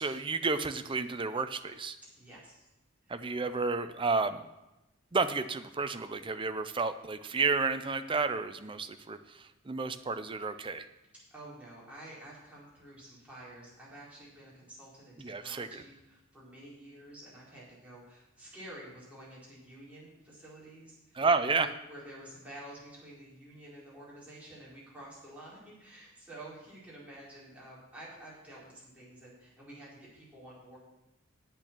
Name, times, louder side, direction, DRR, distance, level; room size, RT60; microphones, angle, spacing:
voice 1, 0.0-2.0 3.1-4.4 5.1-10.9 15.2-15.8 21.2-21.7, right 4 dB, 25° right, 10 dB, 0.5 m, -31 dB
voice 2, 2.2-2.7 3.0-3.2 11.3-30.8, right 1 dB, 5° right, -8 dB, 4.3 m, -50 dB
8.8 x 8.7 x 6.0 m, 0.97 s
head